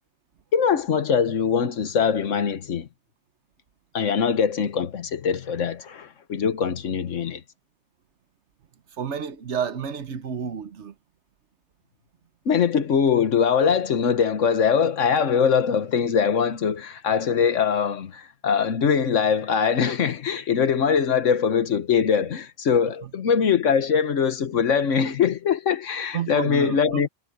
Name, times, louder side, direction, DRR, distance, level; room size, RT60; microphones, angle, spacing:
voice 1, 0.5-2.9 3.9-7.4 12.4-27.1, left 7 dB, 85° left, 1.5 m, -22 dB
voice 2, 9.0-10.9 26.1-27.1, right 7 dB, 70° right, 1.3 m, -30 dB
omnidirectional pair, 1.2 m